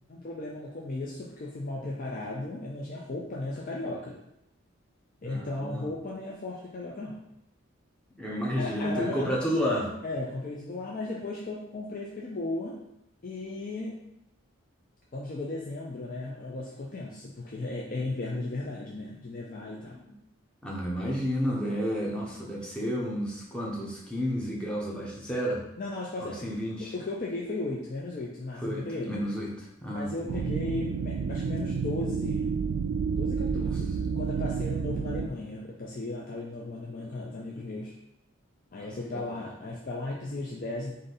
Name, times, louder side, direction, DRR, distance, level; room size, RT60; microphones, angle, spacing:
voice 1, 0.1-4.2 5.2-7.2 8.6-9.2 10.0-12.8 13.2-13.9 15.1-20.0 25.8-26.5 26.9-29.1 29.9-32.5 33.2-37.9 38.7-40.9, left 2 dB, 40° left, -3 dB, 0.4 m, -36 dB
voice 2, 5.2-5.9 8.2-9.9 19.9-20.1 20.6-25.6 26.2-26.9 28.6-30.5 33.4-33.8 38.8-39.4, equal, 5° left, -4 dB, 0.7 m, -31 dB
sound 1, 30.3-35.3, right 5 dB, 85° right, 0.3 m, -30 dB
4.0 x 2.6 x 3.9 m, 0.83 s
head